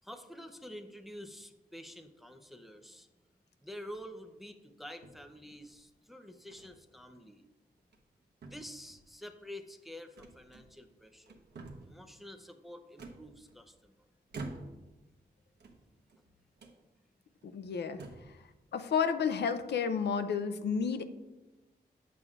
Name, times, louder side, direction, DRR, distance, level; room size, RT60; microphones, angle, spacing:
voice 1, 0.0-3.1 3.6-7.4 8.4-11.4 11.8-13.9, equal, ahead, 5 dB, 0.6 m, -48 dB
sound 1, 3.8-4.2 5.0-5.8 6.5-6.7 7.1-7.3 7.8-8.2 8.4-9.1 10.2-10.9 11.2-12.0 13.0-13.8 14.3-15.0 15.5-16.2 16.6-16.8 17.4-17.5 17.9-18.4, right 3 dB, 90° right, 1.0 m, -48 dB
voice 2, 17.4-18.0 18.7-21.1, left 6 dB, 85° left, 9 dB, 0.5 m, -31 dB
9.2 x 6.9 x 2.4 m, 1.1 s
wide cardioid pair, 110°, 17 cm